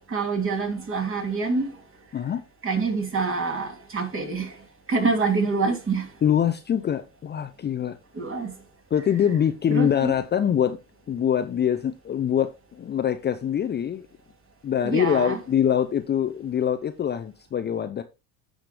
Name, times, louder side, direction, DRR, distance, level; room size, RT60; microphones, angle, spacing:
voice 1, 0.1-1.7 2.6-4.5 4.9-6.1 8.2-8.5 9.7-10.1 14.8-15.4, right 4 dB, 30° right, 3.1 m, -26 dB
voice 2, 6.2-8.0 8.9-10.8 11.1-14.1 14.6-18.0, left 9 dB, 25° left, 0.6 m, -24 dB
15.5 x 5.2 x 3.1 m
hypercardioid pair, 85°, 40 cm